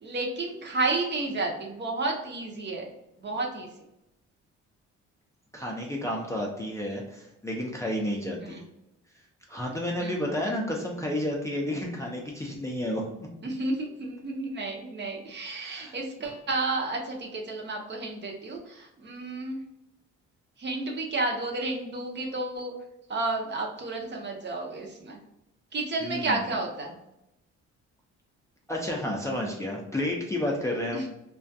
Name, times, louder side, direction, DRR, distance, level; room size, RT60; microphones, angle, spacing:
voice 1, 0.0-2.9 3.2-3.7 8.4-8.6 10.0-10.5 13.4-19.6 20.6-22.7 23.1-25.2 25.7-27.0 30.9-31.1, right 2 dB, 35° right, 0 dB, 0.6 m, -31 dB
voice 2, 5.5-8.6 9.5-13.0 15.5-15.9 26.0-26.4 28.7-31.0, left 1 dB, 10° left, -2 dB, 0.4 m, -31 dB
2.3 x 2.3 x 2.6 m, 0.88 s
cardioid pair, 90°, 30 cm